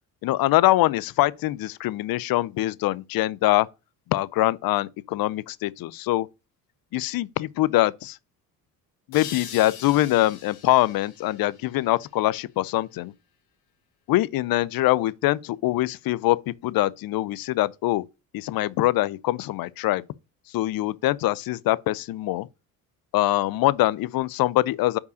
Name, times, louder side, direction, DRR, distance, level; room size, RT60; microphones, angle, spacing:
voice 1, 0.2-3.7 4.1-6.3 6.9-8.2 9.1-13.1 14.1-18.0 18.3-20.0 20.5-22.5 23.1-25.0, left 16 dB, 55° left, 0.5 m, -23 dB
sound 1, 9.1-12.5, left 9 dB, 85° left, 2.1 m, -42 dB
5.6 x 4.6 x 6.3 m
supercardioid pair, 70°, 41 cm